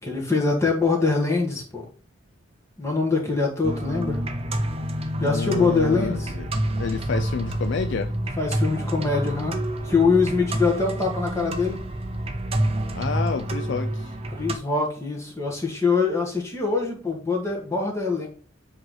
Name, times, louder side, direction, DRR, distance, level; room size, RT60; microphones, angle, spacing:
voice 1, 0.0-1.9 2.8-4.2 5.2-6.3 8.4-9.6 9.8-11.8 14.3-18.3, left 4 dB, 15° left, 1.5 m, -23 dB
sound 1, 3.6-14.6, right 1 dB, 25° right, 0.6 m, -28 dB
voice 2, 5.2-6.5 6.8-8.1 12.6-14.2, left 5 dB, 55° left, 0.4 m, -29 dB
7.8 x 3.2 x 3.8 m
head